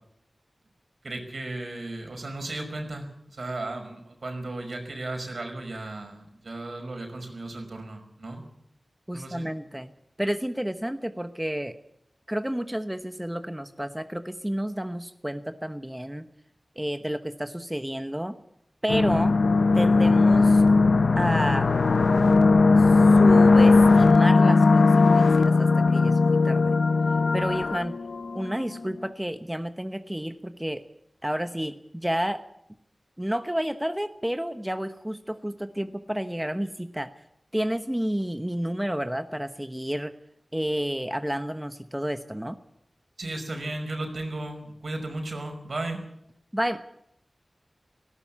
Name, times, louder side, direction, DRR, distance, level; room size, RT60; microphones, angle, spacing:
voice 1, 1.0-8.4 9.1-9.5 43.2-46.0, right 2 dB, 75° right, 4 dB, 5.5 m, -35 dB
voice 2, 9.1-9.9 10.2-11.8 12.3-16.3 16.8-18.4 18.8-19.4 19.7-20.6 21.2-21.7 22.8-26.8 27.3-27.9 28.3-30.8 31.2-32.5 33.2-37.1 37.5-40.1 40.5-42.6 46.5-46.8, equal, 10° right, 8 dB, 1.0 m, -30 dB
sound 1, 18.9-28.6, left 3 dB, 85° left, 0.7 m, -18 dB
18.5 x 17.0 x 8.5 m, 0.76 s
wide cardioid pair, 80°, 0 cm